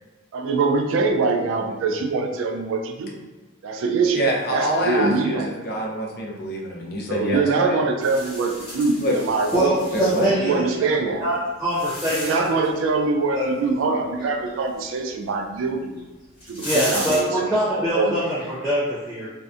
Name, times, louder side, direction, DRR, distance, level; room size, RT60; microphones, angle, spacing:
voice 1, 0.3-3.2 3.6-4.2 4.5-5.5 7.1-9.8 10.4-11.2 12.1-16.0 16.5-18.2, right 3 dB, 80° right, 4 dB, 0.3 m, -23 dB
voice 2, 4.1-7.8 9.0-9.1 9.9-10.3, equal, 50° left, -1 dB, 0.5 m, -25 dB
sound 1, 8.0-10.3 11.1-12.7 15.7-15.8 16.3-17.2, left 1 dB, 30° left, 1.2 m, -33 dB
voice 3, 9.5-10.7 11.2-12.4 13.3-13.5 16.6-19.3, equal, 5° right, -11 dB, 0.6 m, -23 dB
2.7 x 2.1 x 2.4 m, 1.2 s
head